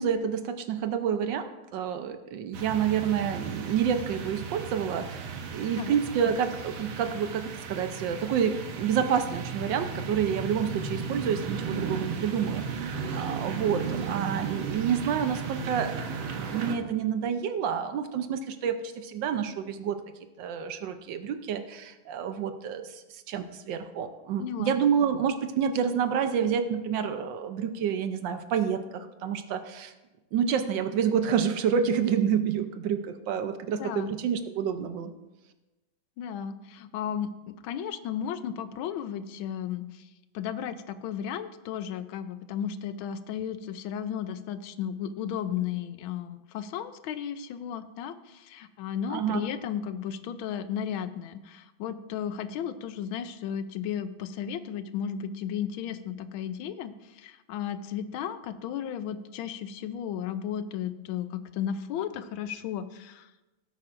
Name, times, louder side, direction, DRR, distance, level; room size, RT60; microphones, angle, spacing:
voice 1, 0.0-15.9 16.5-20.0 20.4-29.9 30.3-35.1 49.1-49.4, right 7 dB, 70° right, 8 dB, 1.3 m, -28 dB
sound 1, 2.5-16.8, right 5 dB, 85° right, 1.8 m, -35 dB
voice 2, 24.4-24.8 33.7-34.1 36.2-40.1 40.3-63.3, left 9 dB, 85° left, 12 dB, 1.4 m, -34 dB
17.5 x 8.6 x 2.5 m, 1.1 s
omnidirectional pair, 2.2 m